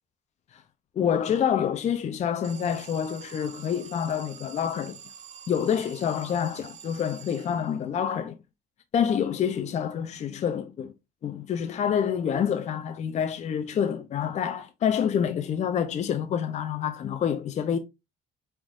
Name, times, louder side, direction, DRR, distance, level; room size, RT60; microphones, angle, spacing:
voice 1, 1.0-5.0 5.5-8.4 8.9-10.9 11.2-17.8, left 8 dB, 45° left, 0.5 m, -27 dB
Alarm, 2.4-8.0, right 8 dB, 45° right, 0.6 m, -47 dB
5.1 x 3.6 x 2.4 m
cardioid pair, 110°, 17 cm